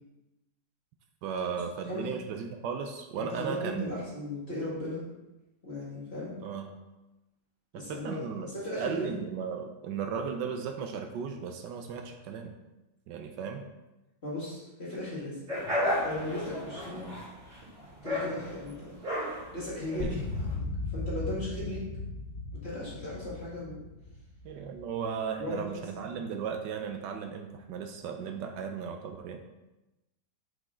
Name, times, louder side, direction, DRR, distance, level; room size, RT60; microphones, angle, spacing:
voice 1, 1.2-3.9 6.4-6.7 7.7-8.5 8.8-12.6 13.1-13.6 20.0-20.2 24.4-29.4, right 6 dB, 80° right, 5 dB, 1.2 m, -36 dB
voice 2, 1.8-2.1 3.2-5.0 5.6-6.3 7.8-9.1 14.2-15.4 16.0-17.1 18.0-18.9 19.5-20.6 20.9-21.8 22.6-23.8 25.4-25.6 26.0-26.2, left 1 dB, 35° left, -8 dB, 2.3 m, -37 dB
sound 1, 15.5-20.5, left 1 dB, 65° right, 3.0 m, -33 dB
sound 2, 20.0-25.4, left 2 dB, 55° left, 0.8 m, -37 dB
6.0 x 5.3 x 3.7 m, 1.0 s
omnidirectional pair, 1.9 m